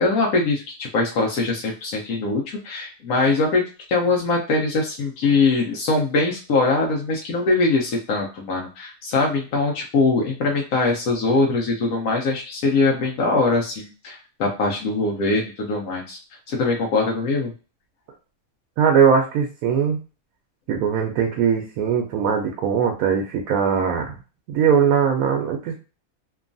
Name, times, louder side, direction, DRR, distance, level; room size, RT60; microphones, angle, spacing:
voice 1, 0.0-3.6 3.9-16.2 16.5-17.5, left 3 dB, 90° left, -1 dB, 1.1 m, -22 dB
voice 2, 18.8-20.0 20.7-24.2 24.5-25.8, right 7 dB, 85° right, 2 dB, 1.0 m, -20 dB
2.9 x 2.3 x 2.5 m, 0.33 s
omnidirectional pair, 1.5 m